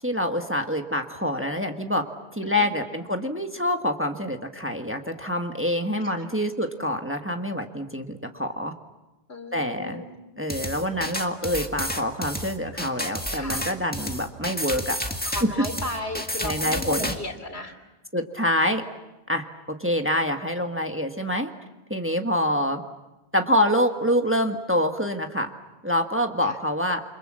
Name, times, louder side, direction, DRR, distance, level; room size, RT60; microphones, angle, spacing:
voice 1, 0.0-2.1 2.3-8.7 9.5-10.0 10.4-15.0 15.4-15.6 16.4-17.1 18.1-18.8 19.3-21.5 21.9-22.8 23.3-25.5 25.8-27.0, equal, 10° right, 5 dB, 1.4 m, -26 dB
voice 2, 9.3-10.1 13.3-13.6 15.3-17.7 26.4-26.5, left 2 dB, 80° left, 6 dB, 3.3 m, -34 dB
sound 1, 10.5-17.2, equal, 10° left, 1.8 m, -30 dB
29.0 x 25.0 x 7.6 m, 1.0 s
omnidirectional pair, 1.1 m